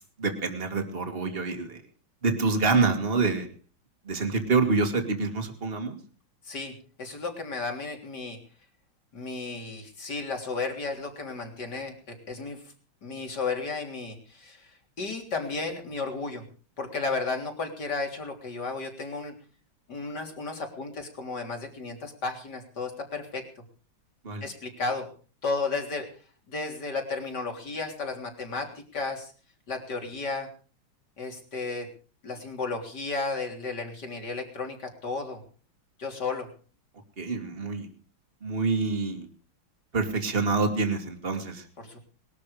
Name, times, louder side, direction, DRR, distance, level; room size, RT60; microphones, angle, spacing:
voice 1, 0.0-1.8 2.2-3.5 4.0-6.0 24.2-24.4 37.2-37.9 38.4-39.3 39.9-41.6, right 4 dB, 25° right, 5 dB, 2.7 m, -26 dB
voice 2, 6.4-8.4 9.1-12.6 13.0-16.4 16.8-19.3 19.9-23.4 24.4-25.1 25.4-26.1 26.5-29.3 29.7-30.5 31.2-31.9 32.2-35.4 36.0-36.5 41.8-42.1, left 3 dB, 50° left, 3 dB, 4.0 m, -33 dB
21.0 x 13.0 x 5.1 m, 0.42 s
omnidirectional pair, 2.3 m